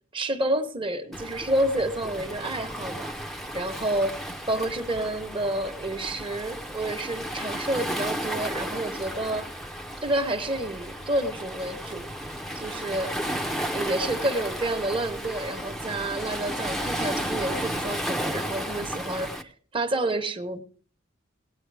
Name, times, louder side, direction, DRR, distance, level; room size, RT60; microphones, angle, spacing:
voice 1, 0.1-3.1 3.5-9.5 10.0-12.1 12.6-13.1 13.7-20.6, right 1 dB, 25° right, 6 dB, 1.1 m, -29 dB
Waves surf, 1.1-19.4, equal, ahead, 0.8 m, -33 dB
18.5 x 8.5 x 3.4 m, 0.43 s
head